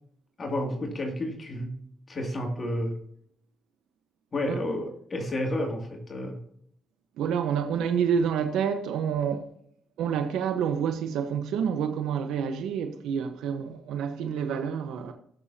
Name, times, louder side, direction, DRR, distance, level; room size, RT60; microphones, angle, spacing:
voice 1, 0.4-1.8 2.1-3.0 4.3-6.4, left 1 dB, 35° left, 2.6 m, -31 dB
voice 2, 7.2-9.5 10.0-15.1, right 7 dB, 85° right, 1.2 m, -28 dB
18.0 x 7.0 x 2.9 m
cardioid pair, 90°, 0 cm